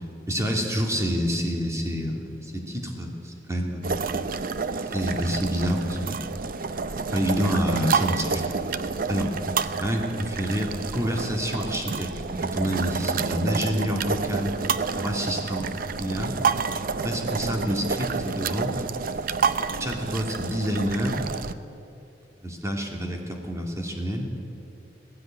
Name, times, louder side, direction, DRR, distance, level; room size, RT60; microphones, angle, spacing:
voice 1, 0.3-3.9 4.7-6.2 7.1-8.6 9.1-9.3 9.8-12.1 12.4-14.5 15.0-15.7 16.0-16.3 17.0-18.7 19.8-21.2 22.4-24.3, equal, 15° right, 1 dB, 2.7 m, -27 dB
sound 1, 3.8-21.5, right 5 dB, 55° right, 0.7 m, -29 dB
18.0 x 15.5 x 9.1 m, 2.6 s
head